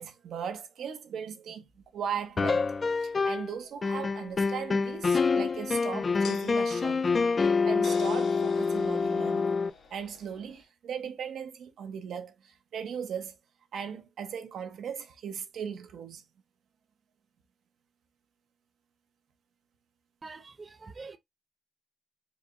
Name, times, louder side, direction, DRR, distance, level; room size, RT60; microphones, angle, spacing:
voice 1, 0.0-2.7 2.9-7.0 7.6-9.5 9.9-13.4 13.7-16.2, right 7 dB, 75° right, 1.0 m, -38 dB
sound 1, 1.8-1.9 4.3-4.4 6.2-10.6, left 5 dB, 65° left, 1.5 m, -46 dB
sound 2, 2.4-3.5 3.8-9.7, left 4 dB, 35° left, 0.3 m, -27 dB
voice 2, 20.2-21.2, right 4 dB, 30° right, 0.5 m, -45 dB
4.7 x 3.4 x 2.6 m
cardioid pair, 110°, 0 cm